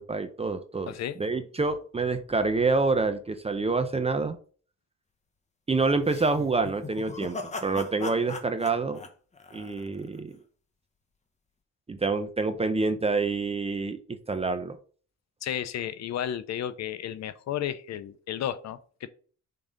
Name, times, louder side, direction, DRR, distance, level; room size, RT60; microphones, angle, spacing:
voice 1, 0.0-4.4 5.7-7.4 7.6-9.0 9.5-10.4 11.9-14.8, right 3 dB, 20° right, 0.6 m, -27 dB
voice 2, 0.9-1.2 15.4-19.1, left 10 dB, 65° left, 0.7 m, -33 dB
sound 1, 6.0-10.2, left 3 dB, 25° left, 1.0 m, -39 dB
5.4 x 3.8 x 5.0 m
cardioid pair, 90°, 30 cm